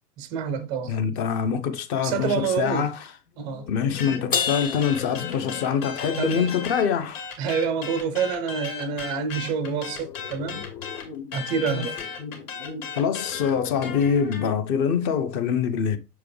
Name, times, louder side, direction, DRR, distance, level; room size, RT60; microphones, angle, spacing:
voice 1, 0.2-1.0 2.0-2.9 3.4-3.7 6.2-6.4 7.4-10.6 11.3-12.0, right 6 dB, 10° right, 0.3 m, -27 dB
voice 2, 0.9-3.1 3.7-7.3 11.0-11.4 11.7-11.9 12.2-16.0, left 7 dB, 40° left, 0.9 m, -25 dB
sound 1, 3.4-7.0 7.6-7.9 9.7-11.2 12.9-14.4, left 7 dB, 85° left, 0.8 m, -41 dB
sound 2, 4.0-6.9 7.1-14.5, left 6 dB, 60° left, 2.7 m, -36 dB
Crash cymbal, 4.3-6.0, left 7 dB, 20° left, 0.7 m, -29 dB
6.7 x 4.8 x 3.2 m
hypercardioid pair, 120°, 47 cm